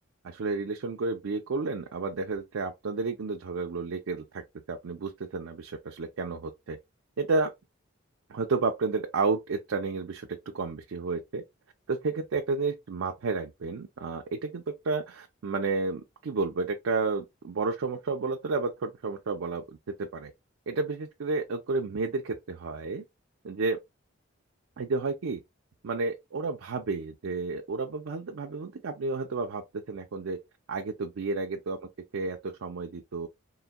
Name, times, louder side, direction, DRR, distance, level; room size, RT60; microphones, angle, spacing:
voice 1, 0.2-4.4 4.7-6.8 7.2-7.5 8.3-11.4 11.9-20.3 20.7-23.0 23.4-23.8 24.8-25.4 25.8-30.4 30.7-31.8 32.1-33.3, right 3 dB, 80° right, 0.5 m, -31 dB
3.9 x 2.6 x 2.2 m
head